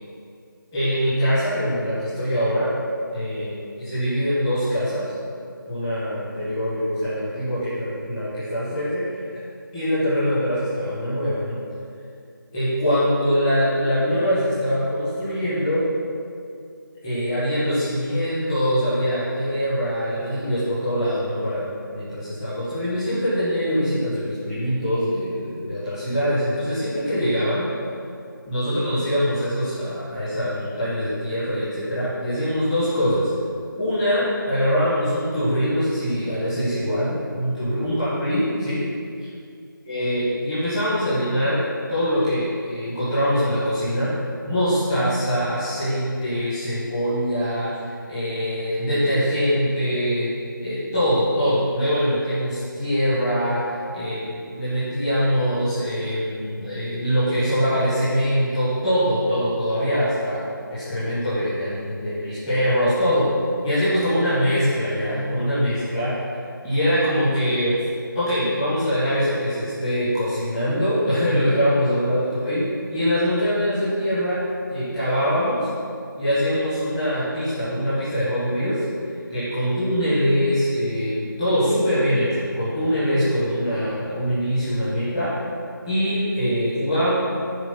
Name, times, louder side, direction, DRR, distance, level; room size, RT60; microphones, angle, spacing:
voice 1, 0.7-2.7 3.1-3.5 3.8-5.1 5.7-9.4 9.7-11.6 12.5-15.8 17.0-27.7 28.5-33.3 33.8-38.8 39.2-39.3 39.8-41.6 41.9-44.1 44.4-50.3 50.6-54.2 54.6-60.4 60.7-63.2 63.6-67.7 68.1-74.4 74.7-75.7 76.2-78.8 79.3-85.3 85.9-87.1, equal, 10° left, -15 dB, 1.7 m, -23 dB
9.9 x 4.5 x 5.9 m, 2.4 s
figure-of-eight pair, 165°, 11 cm